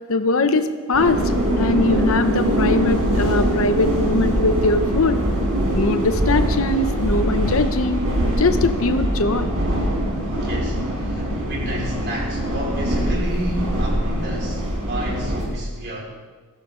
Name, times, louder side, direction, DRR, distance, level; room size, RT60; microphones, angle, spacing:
voice 1, 0.1-5.2 5.7-8.0 8.4-9.5, left 2 dB, 65° left, 9 dB, 0.8 m, -21 dB
sound 1, 0.9-15.4, equal, 85° right, 4.3 m, -22 dB
voice 2, 10.2-16.0, right 1 dB, 50° right, -3 dB, 4.9 m, -31 dB
20.0 x 15.0 x 3.8 m, 1.4 s
head